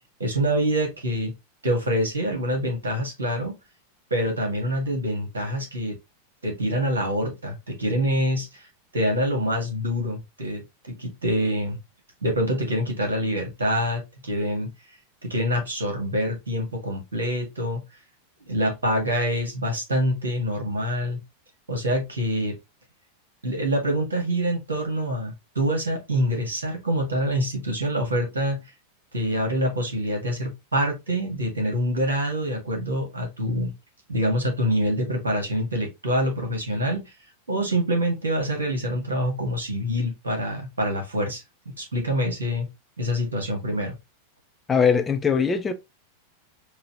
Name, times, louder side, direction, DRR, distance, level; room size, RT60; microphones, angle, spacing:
voice 1, 0.2-1.3 1.6-3.6 4.1-6.0 6.4-8.7 8.9-11.8 12.2-14.7 15.2-17.8 18.5-21.2 21.7-22.6 23.4-28.6 29.1-33.7 34.1-37.1 37.5-42.7 43.0-44.0, equal, 70° right, 1.6 m, -26 dB
voice 2, 44.7-45.7, left 6 dB, 15° left, 0.7 m, -21 dB
4.8 x 2.3 x 2.9 m
figure-of-eight pair, 90°, 0 cm